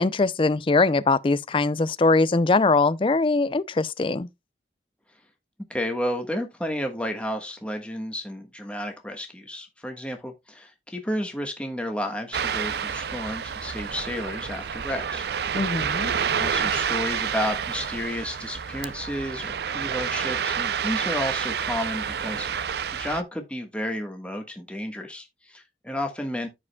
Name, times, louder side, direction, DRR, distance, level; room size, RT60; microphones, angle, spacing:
voice 1, 0.0-4.3 15.5-16.1, left 3 dB, 30° left, 0.4 m, -22 dB
voice 2, 5.7-15.3 16.4-26.5, left 1 dB, 5° left, 1.3 m, -32 dB
Ocean, 12.3-23.2, right 7 dB, 65° right, 0.4 m, -29 dB
14.0 x 4.9 x 2.2 m
head